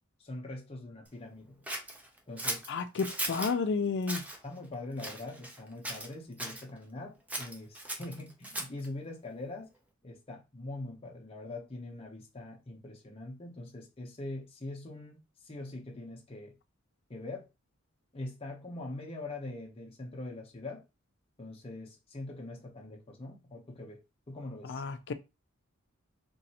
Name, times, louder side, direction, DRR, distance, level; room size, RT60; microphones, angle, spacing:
voice 1, 0.2-1.7 2.3-2.6 4.4-9.7 10.0-16.5 17.1-17.5 18.1-20.8 21.4-24.0 24.3-24.8, left 2 dB, 30° left, 0.7 m, -43 dB
Scissors, 1.7-3.6 4.0-4.4 5.0-5.6 5.8-6.6 7.3-8.9, right 1 dB, 5° right, 0.5 m, -37 dB
voice 2, 2.7-4.3 24.6-25.1, left 4 dB, 55° left, 0.4 m, -31 dB
3.0 x 2.6 x 2.8 m
head